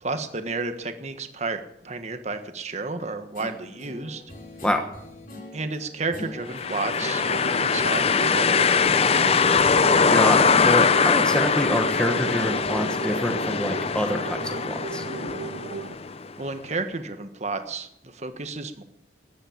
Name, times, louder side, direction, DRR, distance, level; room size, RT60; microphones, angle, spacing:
voice 1, 0.0-4.2 5.5-9.4 16.4-18.8, right 3 dB, 40° right, 8 dB, 1.3 m, -32 dB
Guitar, 3.3-9.2, left 1 dB, 50° left, 3.5 m, -43 dB
sound 1, 6.5-16.3, left 5 dB, 35° left, 0.5 m, -22 dB
sound 2, 6.5-15.9, right 4 dB, 75° right, 0.7 m, -37 dB
voice 2, 10.1-15.0, equal, 5° left, 5 dB, 1.2 m, -26 dB
13.5 x 10.0 x 8.7 m, 0.79 s
head